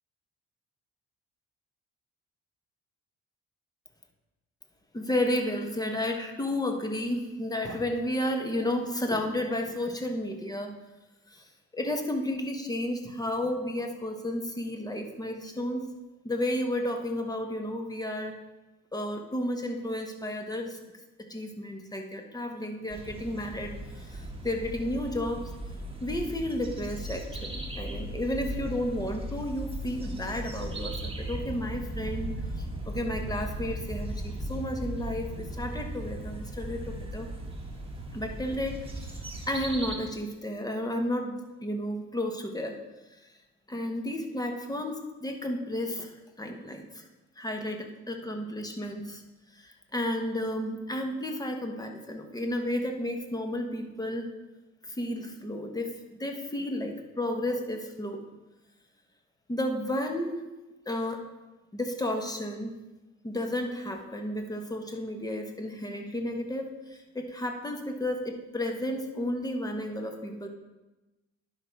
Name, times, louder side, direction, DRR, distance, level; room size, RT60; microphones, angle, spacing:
voice 1, 4.9-10.7 11.3-11.4 11.7-15.9 16.2-18.4 18.9-20.8 21.3-25.4 26.0-37.3 38.1-39.2 39.5-42.8 43.7-47.1 47.4-49.2 49.5-54.3 55.0-55.9 56.2-58.2 59.5-60.4 60.9-61.2 61.7-62.8 63.2-70.5, left 1 dB, 10° left, 4 dB, 1.3 m, -32 dB
sound 1, 22.9-40.0, right 1 dB, 20° right, 1.6 m, -37 dB
10.5 x 5.8 x 4.7 m, 1.1 s
cardioid pair, 90°, 30 cm